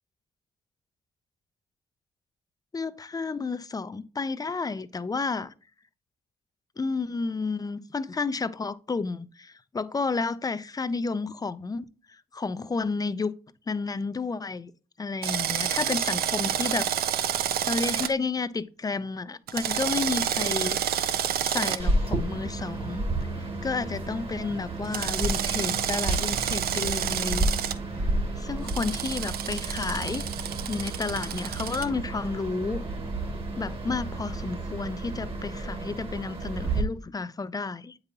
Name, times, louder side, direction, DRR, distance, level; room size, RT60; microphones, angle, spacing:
voice 1, 2.7-5.5 6.8-13.3 13.7-14.7 15.0-20.8 21.4-23.1 23.3-27.5 28.4-30.3 30.7-32.8 33.6-38.0, left 4 dB, 25° left, 0.5 m, -31 dB
Drill, 15.2-18.1 19.5-21.8 24.9-27.7 28.7-31.8, right 10 dB, 70° right, 0.5 m, -29 dB
sound 1, 21.8-36.8, right 2 dB, 35° right, 1.4 m, -31 dB
7.9 x 5.3 x 2.8 m
cardioid pair, 75°, 16 cm